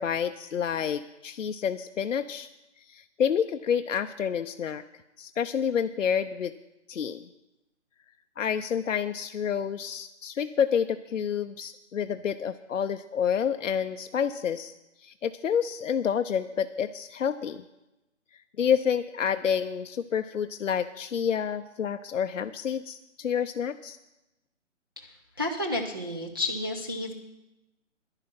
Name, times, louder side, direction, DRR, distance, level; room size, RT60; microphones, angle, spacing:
voice 1, 0.0-2.5 2.9-4.8 5.2-6.5 6.9-7.2 8.4-14.7 15.0-17.6 18.3-24.0, left 7 dB, 85° left, 8 dB, 0.6 m, -29 dB
voice 2, 25.0-27.1, left 2 dB, 20° right, -1 dB, 0.5 m, -31 dB
11.0 x 10.5 x 6.0 m, 0.96 s
hypercardioid pair, 160°, 37 cm